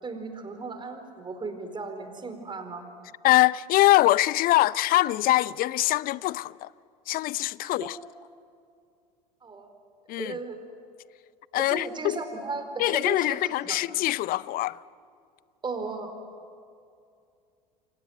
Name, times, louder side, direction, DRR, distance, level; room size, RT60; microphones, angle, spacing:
voice 1, 0.0-2.8 7.6-7.9 9.4-9.7 10.2-10.6 11.6-13.8 15.6-16.1, right 3 dB, 20° right, 4.6 m, -36 dB
voice 2, 3.2-6.7 7.1-8.0 10.1-10.3 11.5-12.2 12.8-14.8, left 17 dB, 45° left, 0.7 m, -23 dB
28.5 x 26.0 x 7.9 m
hypercardioid pair, 75°, 21 cm